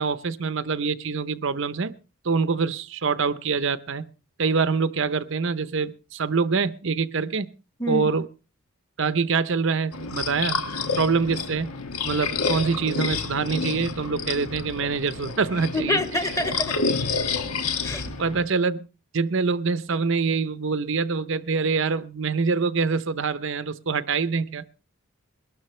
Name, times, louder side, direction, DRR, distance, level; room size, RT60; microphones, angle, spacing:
voice 1, 0.0-1.9 2.2-4.0 4.4-7.5 7.9-8.3 9.0-10.7 11.0-11.7 12.0-16.0 18.2-18.8 19.1-24.7, right 4 dB, 60° right, 0.7 m, -25 dB
voice 2, 7.8-8.1 15.7-17.1 17.8-18.0, left 1 dB, 15° left, 1.2 m, -27 dB
sound 1, 9.9-18.4, left 4 dB, 85° left, 1.5 m, -29 dB
22.0 x 12.5 x 3.2 m
head